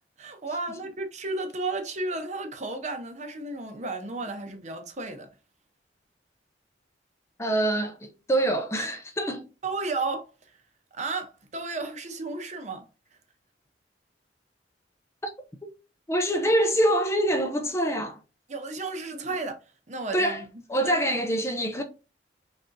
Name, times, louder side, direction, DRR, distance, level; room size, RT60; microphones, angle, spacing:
voice 1, 0.2-5.3 9.6-10.3 10.9-12.9 18.5-19.6 19.9-20.4 20.8-20.9, right 3 dB, 40° right, 0.7 m, -33 dB
voice 2, 7.4-9.5 15.6-15.7 16.1-18.2 20.1-20.4 20.7-21.8, right 1 dB, 15° left, 0.4 m, -25 dB
3.9 x 3.5 x 2.6 m
head